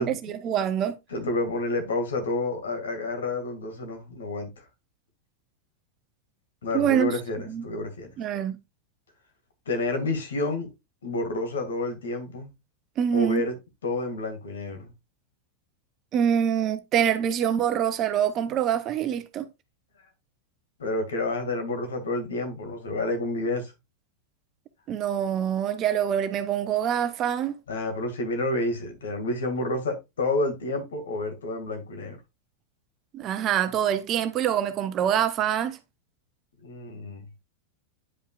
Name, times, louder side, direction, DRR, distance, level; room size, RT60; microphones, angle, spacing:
voice 1, 0.0-1.0 6.7-7.1 7.5-7.6 8.2-8.6 13.0-13.4 16.1-19.5 24.9-27.5 33.1-35.8, right 9 dB, 35° right, 0.8 m, -25 dB
voice 2, 1.1-4.5 6.6-8.1 9.7-10.7 11.0-12.5 13.1-13.5 13.8-14.9 20.8-23.7 27.7-32.2 36.6-37.3, left 2 dB, 65° left, 2.1 m, -29 dB
9.7 x 5.6 x 2.4 m
figure-of-eight pair, 90°, 0 cm